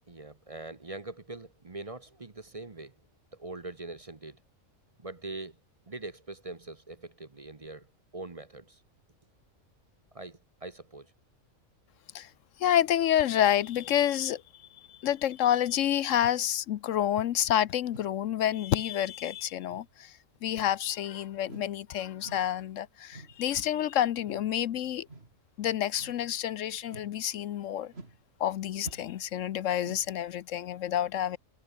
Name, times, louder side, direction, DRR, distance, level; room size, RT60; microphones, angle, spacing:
voice 1, 0.1-3.0 3.3-4.4 5.0-5.6 5.9-7.9 8.1-8.8 10.1-11.1, right 2 dB, 30° right, 1.1 m, -42 dB
voice 2, 12.6-14.4 14.9-20.1 20.4-25.1 25.6-27.9 28.4-31.4, left 11 dB, 75° left, 1.0 m, -28 dB
sound 1, 16.2-16.4 17.1-17.4 17.9-18.2 18.7-19.0 19.7-19.9 20.5-20.8 21.4-21.8 22.2-22.5 23.1-23.4 24.2-24.5 25.1-25.4 26.0-26.3 26.9-27.2 27.9-28.2 28.8-29.2 29.8-30.1, right 2 dB, 50° right, 3.8 m, -48 dB
omnidirectional pair, 1.4 m